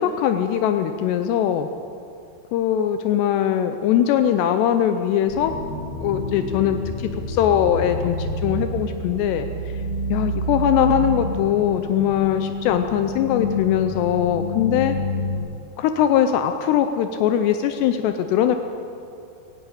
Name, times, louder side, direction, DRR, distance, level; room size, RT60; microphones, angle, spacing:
voice 1, 0.0-1.7 2.5-5.6 6.0-9.5 10.1-15.0 15.8-18.6, left 10 dB, 80° left, 8 dB, 2.8 m, -21 dB
sound 1, 5.3-15.4, left 1 dB, 40° left, 5.2 m, -28 dB
17.5 x 17.0 x 8.8 m, 2.6 s
omnidirectional pair, 5.0 m